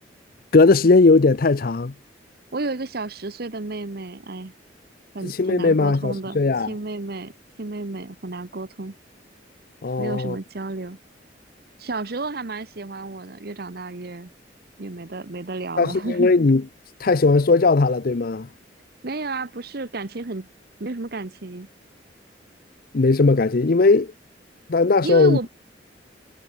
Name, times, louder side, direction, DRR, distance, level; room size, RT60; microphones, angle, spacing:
voice 1, 0.5-1.9 5.2-6.7 9.8-10.4 15.8-16.6 17.0-18.5 22.9-24.1 24.7-25.4, left 3 dB, 55° left, 0.6 m, -18 dB
voice 2, 2.5-4.5 5.1-6.4 6.7-7.3 7.6-8.9 10.0-11.0 11.8-14.3 14.8-16.3 19.0-20.5 20.8-21.7 25.0-25.5, right 3 dB, 60° right, 1.1 m, -31 dB
head